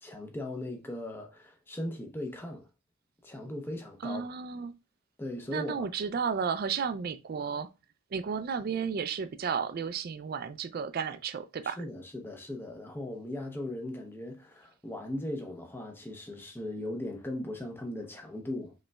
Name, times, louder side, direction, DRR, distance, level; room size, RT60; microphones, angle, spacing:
voice 1, 0.0-2.7 3.2-4.2 5.2-5.9 11.6-18.7, left 1 dB, 10° left, 0.6 m, -38 dB
voice 2, 4.0-4.7 5.5-7.7 8.1-11.8, right 6 dB, 40° right, 0.3 m, -33 dB
5.0 x 3.2 x 2.2 m
head